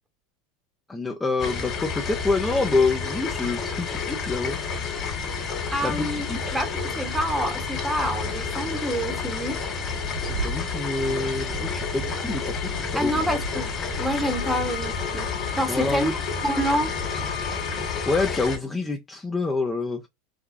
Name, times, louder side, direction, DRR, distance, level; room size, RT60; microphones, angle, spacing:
voice 1, 0.9-4.6 5.8-6.6 10.2-13.1 15.7-16.1 17.5-17.6 18.1-20.0, left 3 dB, 10° left, 0.4 m, -27 dB
sound 1, 1.4-18.6, left 5 dB, 30° left, 1.6 m, -30 dB
voice 2, 5.7-6.3 6.5-6.7 7.0-9.7 12.9-13.7 14.0-16.9, equal, 5° right, 0.8 m, -27 dB
sound 2, 9.8-14.9, right 4 dB, 80° right, 0.4 m, -37 dB
Wind instrument woodwind instrument, 14.0-18.3, left 8 dB, 70° left, 0.8 m, -38 dB
4.7 x 2.3 x 2.4 m
supercardioid pair, 125°, 0 cm